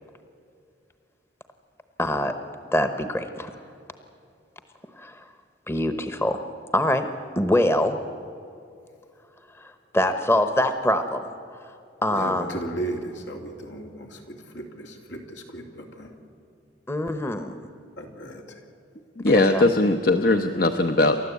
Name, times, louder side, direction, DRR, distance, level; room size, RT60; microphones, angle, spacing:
voice 1, 2.0-2.3 2.7-3.5 5.0-5.2 5.7-6.4 6.7-7.1 7.4-8.0 9.6-11.2 11.5-11.6 12.0-12.6 16.9-17.6 19.3-19.7, left 1 dB, 15° left, 8 dB, 0.9 m, -24 dB
voice 2, 12.1-16.1 18.0-18.6, right 1 dB, 80° left, 2 dB, 3.0 m, -35 dB
voice 3, 19.2-21.2, left 2 dB, 50° left, 7 dB, 0.8 m, -20 dB
29.0 x 13.0 x 8.3 m, 2.6 s
head